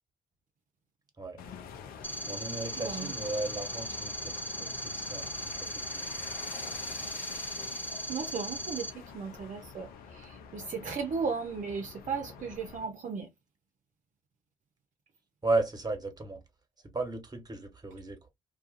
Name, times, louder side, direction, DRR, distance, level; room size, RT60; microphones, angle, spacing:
sound 1, 1.4-12.9, left 7 dB, 75° left, 0.5 m, -46 dB
sound 2, 2.0-8.9, equal, 15° left, 0.7 m, -38 dB
voice 1, 2.2-6.3 15.4-16.4 16.9-18.3, right 2 dB, 25° right, 1.2 m, -35 dB
voice 2, 2.8-3.1 8.1-13.3, right 5 dB, 55° right, 0.7 m, -36 dB
2.3 x 2.3 x 2.5 m
hypercardioid pair, 45°, 15 cm